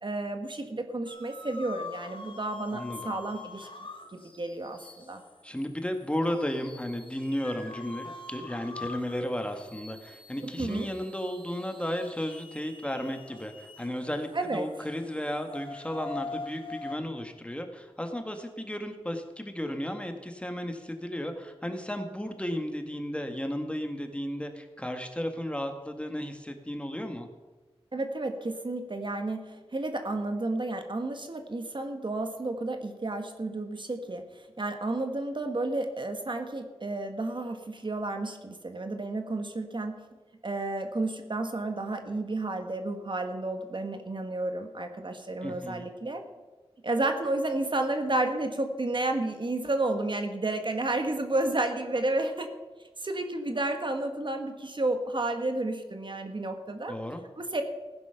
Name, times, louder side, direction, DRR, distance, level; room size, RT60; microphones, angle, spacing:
voice 1, 0.0-3.7 4.1-5.2 10.4-10.9 14.3-14.7 27.9-34.2 34.6-40.0 40.4-46.2 46.8-52.5 53.0-56.9 57.4-57.7, right 2 dB, 50° right, 6 dB, 1.4 m, -31 dB
sound 1, 1.1-17.0, left 3 dB, 55° left, 1.9 m, -45 dB
voice 2, 2.7-3.1 5.4-27.3 45.4-45.9 56.9-57.2, equal, 10° left, 5 dB, 1.7 m, -34 dB
15.5 x 10.5 x 5.8 m, 1.2 s
wide cardioid pair, 70°, 11 cm